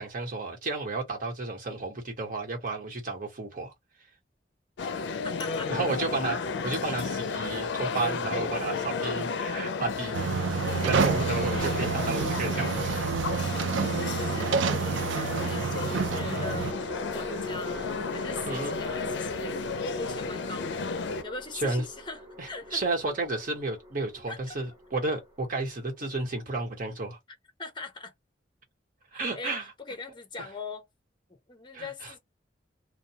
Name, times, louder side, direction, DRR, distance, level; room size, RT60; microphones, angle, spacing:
voice 1, 0.0-3.7 5.7-10.3 10.7-12.9 18.5-18.7 21.5-21.8 22.4-27.2 29.1-29.6 31.7-32.1, right 3 dB, 50° right, 1.2 m, -32 dB
sound 1, 4.8-21.2, left 4 dB, 70° left, 0.4 m, -33 dB
voice 2, 4.8-5.7 14.0-14.5 14.8-16.7 17.1-19.6 20.0-22.8 24.3-24.6 27.6-28.1 29.1-30.9 31.3-32.2, left 3 dB, 25° left, 0.7 m, -41 dB
sound 2, 10.1-16.7, right 5 dB, 85° right, 0.4 m, -28 dB
sound 3, 15.1-26.4, equal, 20° right, 0.8 m, -43 dB
2.2 x 2.2 x 2.7 m
head